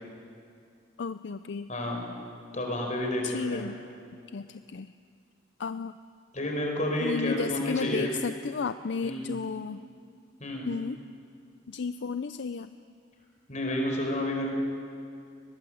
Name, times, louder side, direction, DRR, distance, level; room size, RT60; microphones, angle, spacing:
voice 1, 1.0-1.7 3.2-3.8 4.1-4.9 5.6-6.0 7.0-9.8 10.6-11.0 11.7-12.7, left 5 dB, 65° left, 12 dB, 0.5 m, -33 dB
voice 2, 1.7-2.1 2.5-3.7 6.3-8.1 9.0-9.3 10.4-10.7 13.5-14.5, left 1 dB, 40° left, 1 dB, 4.7 m, -30 dB
21.5 x 20.5 x 7.7 m, 2.4 s
head